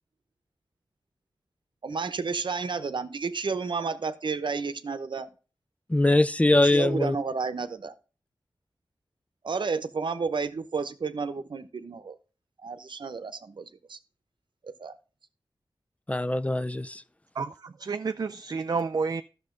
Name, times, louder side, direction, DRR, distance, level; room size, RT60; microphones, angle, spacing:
voice 1, 1.8-5.3 6.6-7.9 9.4-12.2 12.6-14.0 14.6-14.9, right 4 dB, 70° right, 0.8 m, -31 dB
voice 2, 5.9-7.2 16.1-17.0, left 2 dB, 15° left, 0.4 m, -22 dB
voice 3, 17.4-19.2, right 4 dB, 50° right, 0.4 m, -30 dB
11.5 x 6.6 x 3.8 m
wide cardioid pair, 70°, 8 cm